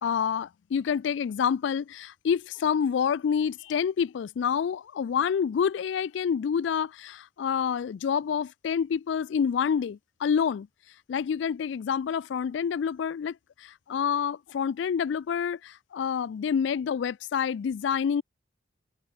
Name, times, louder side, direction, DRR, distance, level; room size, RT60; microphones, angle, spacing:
voice 1, 0.0-10.7 11.1-18.2, left 7 dB, 75° left, 0.3 m, -28 dB
head